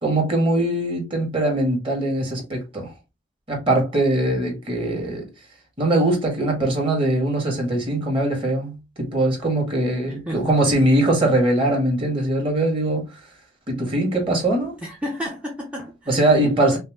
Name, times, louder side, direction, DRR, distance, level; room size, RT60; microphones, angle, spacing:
voice 1, 0.0-2.9 3.5-5.3 5.8-13.1 13.7-14.7 16.1-16.8, right 1 dB, 30° right, 1.8 m, -21 dB
voice 2, 10.1-10.8 14.8-16.8, equal, 5° right, 0.7 m, -33 dB
5.5 x 2.1 x 3.5 m
head